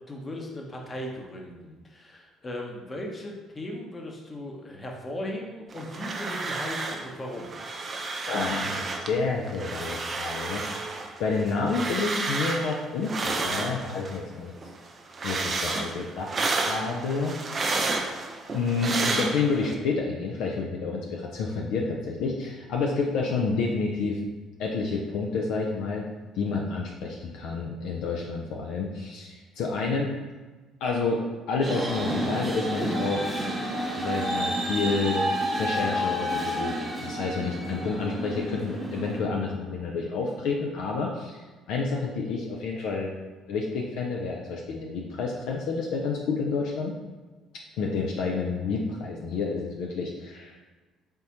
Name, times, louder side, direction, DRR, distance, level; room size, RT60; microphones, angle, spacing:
voice 1, 0.1-7.5, left 1 dB, 30° left, 0 dB, 0.8 m, -37 dB
sound 1, 5.7-7.1 7.3-9.1 9.5-14.2 14.6-19.7, right 3 dB, 35° right, 0.5 m, -31 dB
voice 2, 8.3-14.5 15.2-16.4 16.7-17.4 18.5-24.2 24.6-26.1 26.3-30.1 30.8-33.3 34.0-35.2 35.5-43.1 43.5-46.9 47.8-50.7, left 4 dB, 65° left, -1 dB, 0.4 m, -29 dB
sound 2, 31.6-39.2, equal, 20° right, 1.0 m, -30 dB
4.1 x 3.5 x 2.8 m, 1.3 s
figure-of-eight pair, 50°, 0 cm